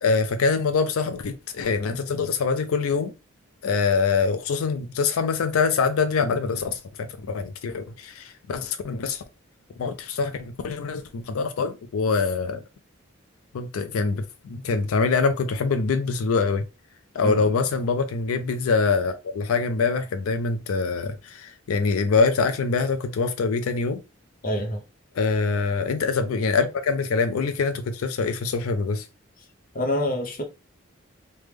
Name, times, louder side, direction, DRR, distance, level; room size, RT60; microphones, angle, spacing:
voice 1, 0.0-3.1 3.6-9.2 9.8-12.6 13.5-16.6 17.1-24.0 25.1-29.1, left 4 dB, 90° left, 0.4 m, -24 dB
voice 2, 17.2-17.5 24.4-24.8 29.7-30.4, left 1 dB, 40° left, 0.6 m, -26 dB
3.3 x 2.0 x 3.3 m
head